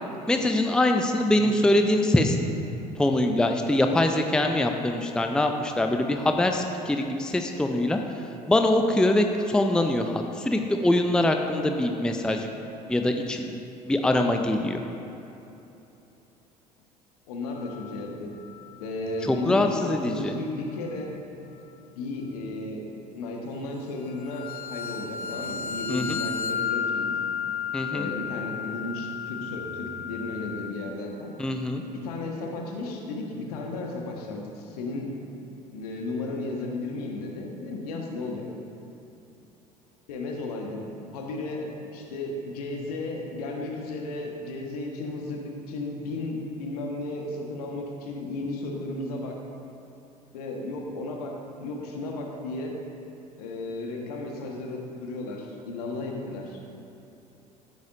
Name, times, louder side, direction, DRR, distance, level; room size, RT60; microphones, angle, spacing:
voice 1, 0.3-2.4 3.0-8.0 8.5-12.5 12.9-13.4 13.8-14.8 19.3-20.3 25.9-26.2 27.7-28.1 31.4-31.8, left 1 dB, 5° left, 5 dB, 0.6 m, -23 dB
voice 2, 17.3-18.3 18.8-21.1 21.9-22.9 23.1-27.2 27.9-31.3 31.9-35.1 35.7-38.5 40.1-49.4 50.3-52.8 53.4-56.6, left 2 dB, 65° left, 0 dB, 1.4 m, -34 dB
sound 1, 17.6-18.0 18.4-18.7 24.2-30.7, left 7 dB, 45° left, 0.8 m, -33 dB
14.5 x 9.1 x 2.6 m, 2.9 s
figure-of-eight pair, 65°, 21 cm